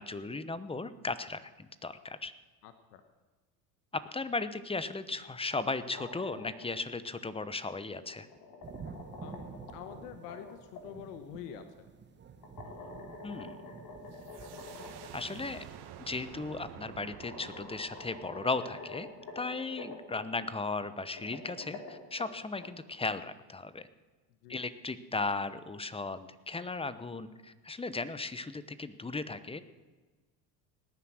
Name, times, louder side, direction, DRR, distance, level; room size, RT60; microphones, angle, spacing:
voice 1, 0.0-2.3 3.9-8.3 13.2-13.7 15.1-15.6 16.0-19.1 19.3-23.9 24.5-29.6, left 3 dB, 10° left, 14 dB, 0.9 m, -36 dB
voice 2, 2.6-3.0 9.2-11.9 24.4-24.6, left 9 dB, 80° left, 9 dB, 1.3 m, -46 dB
sound 1, 5.9-6.8 8.0-10.8 12.4-15.2 15.5-15.6 16.7-16.8 17.2-20.1 21.0-22.7, left 3 dB, 45° left, 3.6 m, -47 dB
sound 2, 8.6-15.8, right 5 dB, 25° right, 1.2 m, -50 dB
sound 3, 14.1-19.6, right 9 dB, 55° right, 1.8 m, -50 dB
18.0 x 10.0 x 6.3 m, 1.3 s
supercardioid pair, 90°, 46 cm